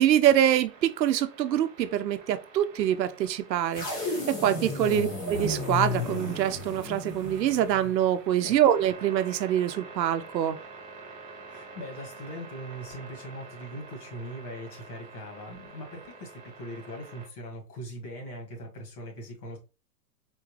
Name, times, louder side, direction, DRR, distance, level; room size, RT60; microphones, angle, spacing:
voice 1, 0.0-10.6, right 11 dB, 90° right, 0.6 m, -25 dB
sound 1, 0.6-17.3, right 4 dB, 25° right, 0.8 m, -47 dB
sound 2, 3.7-8.0, left 3 dB, 20° left, 0.7 m, -33 dB
voice 2, 4.5-5.0 8.4-8.6 11.4-19.6, equal, 65° left, 1.9 m, -41 dB
4.3 x 2.3 x 3.1 m
hypercardioid pair, 150°, 50 cm